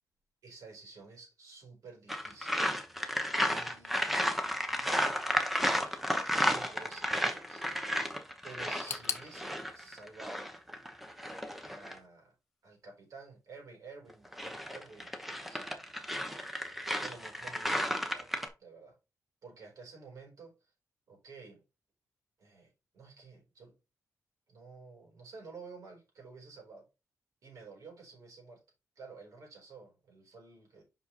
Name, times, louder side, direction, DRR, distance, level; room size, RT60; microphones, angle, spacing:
voice 1, 0.4-2.6 3.5-4.1 4.7-5.2 5.6-7.7 8.4-10.5 11.6-12.3 12.6-15.6 17.0-18.3 18.6-19.0 19.4-20.7 21.1-21.6 22.4-23.8 24.5-26.9 27.4-28.6 29.0-30.8, right 4 dB, 65° right, 4.3 m, -51 dB
sound 1, 2.1-12.0 14.1-18.5, equal, ahead, 1.0 m, -33 dB
sound 2, 8.9-11.7 12.0-12.8 13.1-13.2 14.0-14.1, left 7 dB, 45° left, 0.8 m, -43 dB
5.5 x 5.3 x 4.3 m
wide cardioid pair, 155°, 6 cm